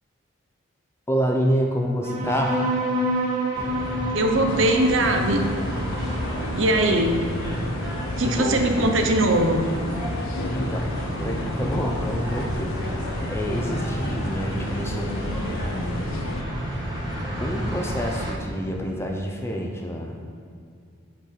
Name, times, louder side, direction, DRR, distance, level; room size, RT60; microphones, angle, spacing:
voice 1, 1.1-2.6 8.2-8.6 10.5-10.9 11.2-12.8 13.3-16.2 16.7-16.9 17.4-20.3, equal, 10° left, 1 dB, 0.6 m, -28 dB
sound 1, 2.0-9.0, right 1 dB, 35° right, 1.7 m, -29 dB
sound 2, 3.5-18.3, equal, 20° right, 1.6 m, -31 dB
voice 2, 4.1-5.4 6.5-7.3 8.2-9.7, right 1 dB, 70° right, 4 dB, 0.7 m, -21 dB
sound 3, 4.5-16.4, left 2 dB, 85° left, 0.5 m, -33 dB
6.1 x 5.5 x 5.1 m, 2.4 s
head